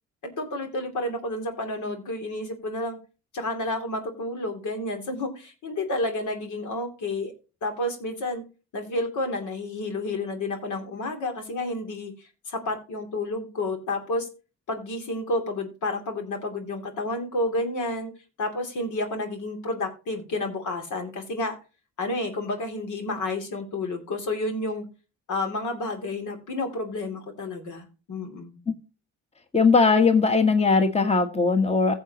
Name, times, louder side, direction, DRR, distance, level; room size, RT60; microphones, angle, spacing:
voice 1, 0.2-3.0 3.3-7.3 7.6-8.4 8.7-12.1 12.5-14.3 14.7-18.1 18.4-21.6 22.0-24.9 25.3-28.6, left 2 dB, 75° left, 2.8 m, -30 dB
voice 2, 29.5-31.9, left 4 dB, 20° left, 1.3 m, -19 dB
15.5 x 7.0 x 2.9 m
cardioid pair, 90°, 30 cm